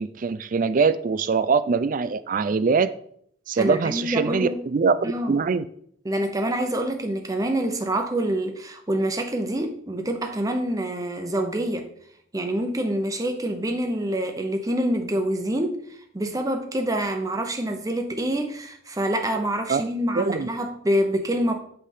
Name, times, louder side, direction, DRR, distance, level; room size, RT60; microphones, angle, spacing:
voice 1, 0.0-2.9 3.5-5.7 19.7-19.8 20.1-20.5, right 5 dB, 40° right, 0.3 m, -23 dB
voice 2, 3.6-4.7 5.0-5.4 6.0-11.9 12.3-15.8 16.1-21.5, right 1 dB, 15° right, 0.8 m, -26 dB
8.3 x 3.4 x 5.6 m
head